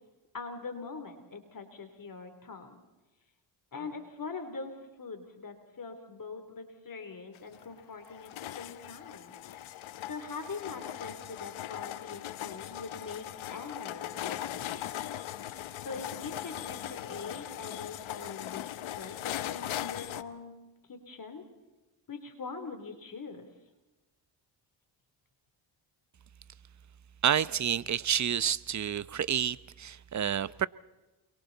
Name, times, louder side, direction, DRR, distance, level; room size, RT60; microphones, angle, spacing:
voice 1, 0.3-2.8 3.7-9.4 10.0-15.1 15.8-20.5 20.9-21.5 22.1-23.5, left 4 dB, 45° left, 7 dB, 3.4 m, -43 dB
sound 1, 7.4-20.2, left 12 dB, 75° left, 1.1 m, -39 dB
voice 2, 27.2-30.7, right 9 dB, 35° right, 17 dB, 0.8 m, -29 dB
29.5 x 23.5 x 4.1 m, 1.1 s
cardioid pair, 75°, 48 cm